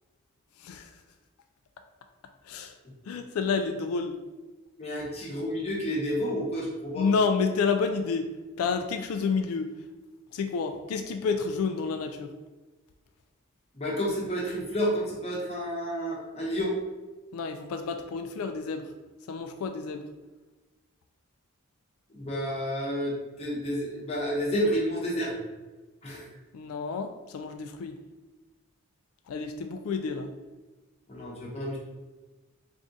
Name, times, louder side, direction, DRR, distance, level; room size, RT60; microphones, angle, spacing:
voice 1, 0.6-0.9 2.4-2.7 3.1-4.2 6.9-8.3 8.6-9.7 10.3-12.3 17.3-18.9 19.3-20.0 26.5-28.0 29.3-30.3, left 5 dB, 85° left, 6 dB, 0.3 m, -29 dB
voice 2, 4.8-7.1 13.7-16.7 22.1-25.4 26.0-26.2 31.1-31.8, equal, 30° left, -4 dB, 0.9 m, -30 dB
3.6 x 2.4 x 3.9 m, 1.2 s
head